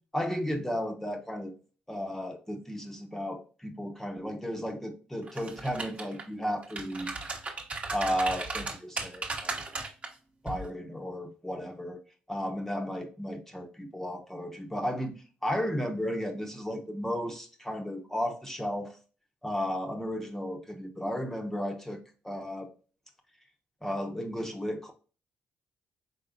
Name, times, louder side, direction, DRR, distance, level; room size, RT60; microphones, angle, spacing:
voice 1, 0.1-1.5 1.9-7.2 7.9-9.6 10.4-12.0 12.3-19.0 19.4-22.7 23.8-24.9, equal, 10° left, 3 dB, 1.0 m, -34 dB
sound 1, 5.3-6.2 6.6-10.1 10.5-10.7, right 3 dB, 35° right, 1.1 m, -36 dB
5.0 x 3.7 x 2.5 m, 0.37 s
cardioid pair, 85°, 4 cm